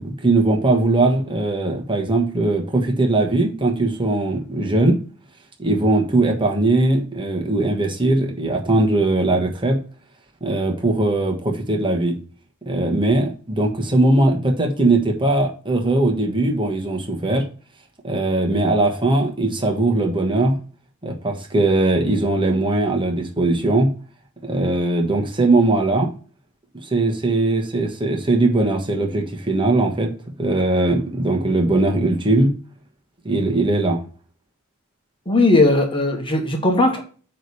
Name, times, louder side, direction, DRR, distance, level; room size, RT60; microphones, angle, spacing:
voice 1, 0.0-5.0 5.6-9.8 10.4-12.2 12.7-17.4 18.0-20.6 21.0-23.9 24.4-26.1 26.8-30.1 30.4-32.5 33.2-34.0, right 2 dB, 25° right, 1 dB, 1.4 m, -20 dB
voice 2, 35.3-37.0, left 2 dB, 25° left, 3 dB, 1.3 m, -17 dB
9.0 x 3.3 x 5.4 m, 0.38 s
head